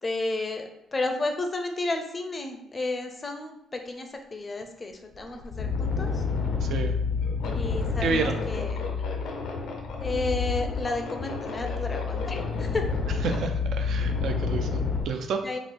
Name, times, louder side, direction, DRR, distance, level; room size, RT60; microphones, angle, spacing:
voice 1, 0.0-6.2 7.5-8.8 10.0-12.8 15.4-15.6, left 2 dB, 30° left, 5 dB, 0.4 m, -32 dB
sound 1, 4.6-4.7 5.1-15.0, left 4 dB, 80° left, 0.5 m, -29 dB
voice 2, 6.6-7.0 8.0-8.4 13.2-15.4, right 4 dB, 70° right, 5 dB, 0.4 m, -30 dB
3.6 x 2.0 x 3.3 m, 0.79 s
cardioid pair, 90°, 0 cm